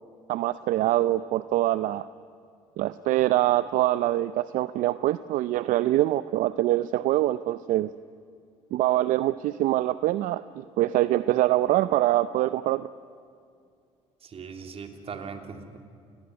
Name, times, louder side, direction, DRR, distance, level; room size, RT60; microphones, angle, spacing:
voice 1, 0.3-2.1 2.8-7.9 8.7-12.9, right 15 dB, 70° right, 15 dB, 0.6 m, -24 dB
voice 2, 14.2-15.8, right 5 dB, 45° right, 5 dB, 3.2 m, -39 dB
27.5 x 18.5 x 9.6 m, 2.3 s
supercardioid pair, 75°, 14 cm